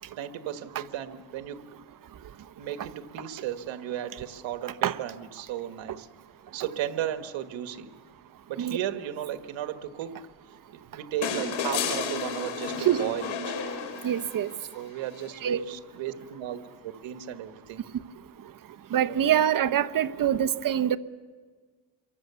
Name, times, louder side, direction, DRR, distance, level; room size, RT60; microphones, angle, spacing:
voice 1, 0.2-1.6 2.6-6.1 6.5-7.9 8.5-10.1 10.7-13.5 14.7-17.9 19.1-19.4, right 11 dB, 80° right, 8 dB, 1.6 m, -35 dB
sound 1, 11.2-14.6 16.1-16.2, left 5 dB, 90° left, 3.9 m, -32 dB
voice 2, 14.0-14.5 15.4-15.6 18.9-21.0, right 10 dB, 45° right, 11 dB, 1.0 m, -24 dB
27.5 x 23.5 x 7.0 m, 1.5 s
cardioid pair, 100°, 45 cm